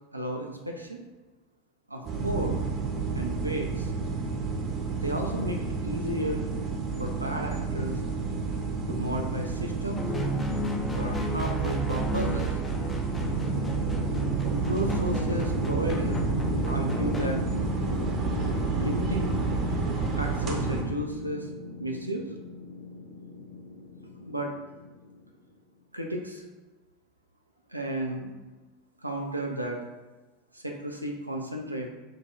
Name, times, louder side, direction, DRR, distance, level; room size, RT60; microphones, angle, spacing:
voice 1, 0.1-1.1 1.9-2.6 3.1-3.9 5.0-6.5 7.0-8.0 8.9-10.1 11.0-12.5 14.7-16.2 16.7-17.4 18.8-19.3 20.2-21.5 21.8-22.3 24.2-24.5 25.9-26.4 27.7-28.3 29.0-29.8 30.5-31.9, equal, 85° right, 1 dB, 0.4 m, -33 dB
sound 1, 2.0-20.8, right 4 dB, 35° right, 0.6 m, -30 dB
sound 2, 10.0-17.4, right 1 dB, 15° left, 0.5 m, -33 dB
sound 3, 13.3-25.4, left 3 dB, 65° left, 1.0 m, -37 dB
3.8 x 2.2 x 3.9 m, 1.2 s
figure-of-eight pair, 80°, 0 cm